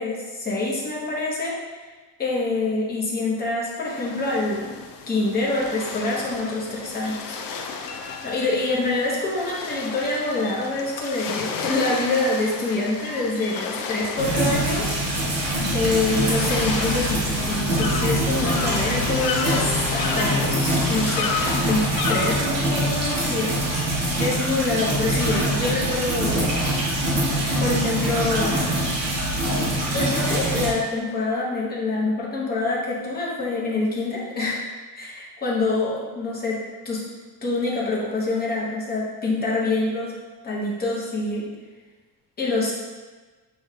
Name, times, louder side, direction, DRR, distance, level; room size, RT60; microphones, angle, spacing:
voice 1, 0.0-1.5 2.2-4.7 5.1-7.7 8.2-14.9 15.4-21.3 21.6-23.5 24.2-26.5 27.6-28.5 29.9-34.6 34.9-37.0 37.4-40.1 40.4-41.5 42.4-42.7, left 2 dB, 20° left, -5 dB, 0.8 m, -26 dB
sound 1, 3.8-22.3, left 5 dB, 55° left, 0.5 m, -32 dB
sound 2, 14.2-30.7, right 1 dB, 40° right, 1.0 m, -24 dB
6.6 x 3.0 x 2.3 m, 1.3 s
cardioid pair, 175°, 41 cm